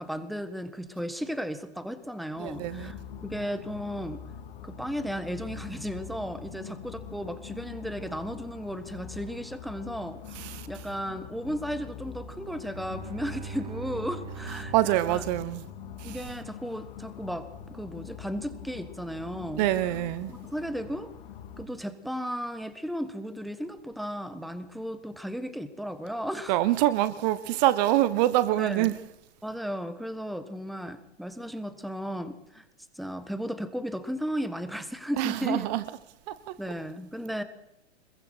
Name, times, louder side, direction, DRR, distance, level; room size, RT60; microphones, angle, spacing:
voice 1, 0.0-3.0 3.2-4.2 4.6-15.2 16.0-19.7 20.3-21.1 21.6-26.6 28.6-28.9 29.4-32.6 32.9-35.7 36.6-37.4, equal, ahead, 1.4 m, -35 dB
sound 1, 2.4-21.7, left 8 dB, 50° left, 2.1 m, -43 dB
voice 2, 2.4-2.9 10.3-10.7 14.7-15.6 16.0-16.2 19.6-20.3 26.5-29.0 35.2-35.8 36.3-36.6, right 15 dB, 40° right, 1.1 m, -25 dB
Bowed string instrument, 12.5-16.3, right 7 dB, 15° right, 1.3 m, -42 dB
25.5 x 22.0 x 4.6 m
hypercardioid pair, 115°, 34 cm